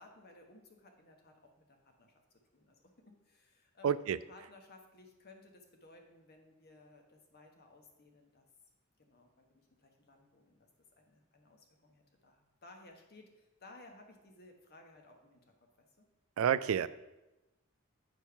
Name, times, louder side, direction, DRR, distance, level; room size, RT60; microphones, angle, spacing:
voice 1, 0.0-8.5 9.0-10.7 11.0-16.1, left 2 dB, 45° left, 3 dB, 1.2 m, -59 dB
voice 2, 3.8-4.2 16.4-16.9, right 8 dB, 70° right, 15 dB, 0.3 m, -29 dB
8.6 x 4.5 x 5.7 m, 1.0 s
head